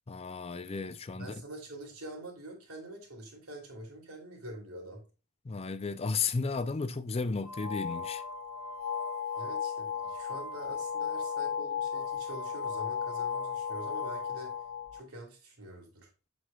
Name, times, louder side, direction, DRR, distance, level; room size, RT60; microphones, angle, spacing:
voice 1, 0.1-1.3 5.5-8.2, left 4 dB, 30° left, 0.4 m, -34 dB
voice 2, 1.1-5.0 9.4-14.5 14.9-16.1, right 1 dB, 85° right, 2.9 m, -45 dB
sound 1, 7.4-15.0, left 6 dB, 65° left, 0.9 m, -35 dB
7.5 x 6.4 x 2.3 m
head